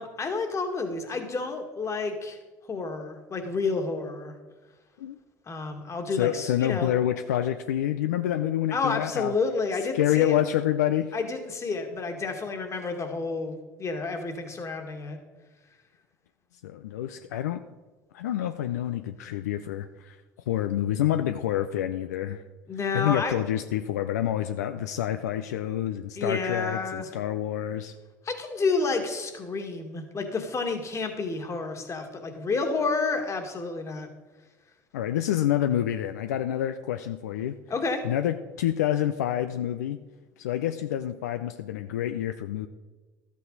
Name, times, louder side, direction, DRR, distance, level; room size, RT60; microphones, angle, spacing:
voice 1, 0.0-2.4 2.7-4.4 5.5-6.9 8.7-10.4 11.1-15.2 22.7-23.3 26.2-27.1 28.2-34.1 37.7-38.0, left 4 dB, 35° left, 5 dB, 2.0 m, -30 dB
voice 2, 6.2-9.3 9.9-11.1 16.6-17.6 18.1-20.2 20.5-22.4 22.9-27.9 34.9-37.6 38.0-40.0 40.4-42.7, left 11 dB, 80° left, 9 dB, 0.4 m, -27 dB
12.5 x 8.3 x 4.0 m, 1.3 s
hypercardioid pair, 65°, 9 cm